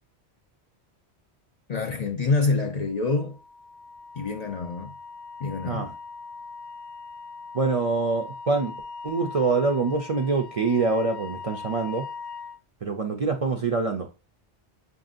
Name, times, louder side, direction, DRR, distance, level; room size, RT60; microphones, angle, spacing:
voice 1, 1.7-3.4 4.2-4.9 5.4-5.9, left 3 dB, 50° left, 0.5 m, -26 dB
Wind instrument woodwind instrument, 3.1-12.6, left 4 dB, 85° left, 0.9 m, -40 dB
voice 2, 7.5-8.8 9.0-12.1 12.8-14.1, right 4 dB, 45° right, 0.5 m, -25 dB
5.8 x 2.7 x 2.4 m
omnidirectional pair, 1.1 m